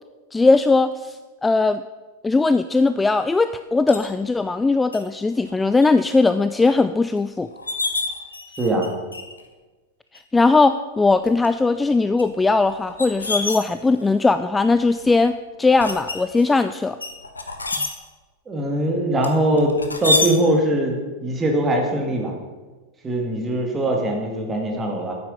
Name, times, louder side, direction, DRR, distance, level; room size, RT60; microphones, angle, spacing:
voice 1, 0.3-1.8 2.2-7.5 10.3-17.0, left 3 dB, 10° left, 11 dB, 0.3 m, -19 dB
sound 1, 3.9-4.1 4.9-5.0 5.5-5.9 6.3-6.4 7.2-7.3 7.5-8.9 9.1-9.5 10.1-10.2 11.1-11.5 12.2-14.2 14.8-15.2 15.8-16.5 17.0-17.9 19.2-20.3, left 3 dB, 80° left, 1.1 m, -27 dB
voice 2, 8.6-8.9 18.5-22.4 23.0-25.2, right 1 dB, 20° right, 1 dB, 2.2 m, -22 dB
8.9 x 8.8 x 5.4 m, 1.3 s
figure-of-eight pair, 90°, 0 cm